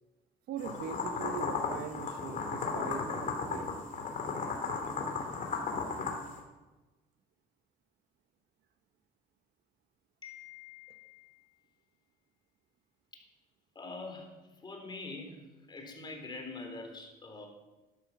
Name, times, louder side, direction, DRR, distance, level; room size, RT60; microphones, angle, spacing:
voice 1, 0.5-3.7, right 7 dB, 70° right, 8 dB, 1.3 m, -41 dB
sound 1, 0.6-6.4, left 4 dB, 50° left, 2.9 m, -35 dB
voice 2, 10.2-11.4 13.8-14.3 14.6-15.4 15.7-17.5, left 3 dB, 25° left, 3 dB, 3.7 m, -44 dB
12.5 x 12.0 x 6.1 m, 1.1 s
cardioid pair, 110°, 17 cm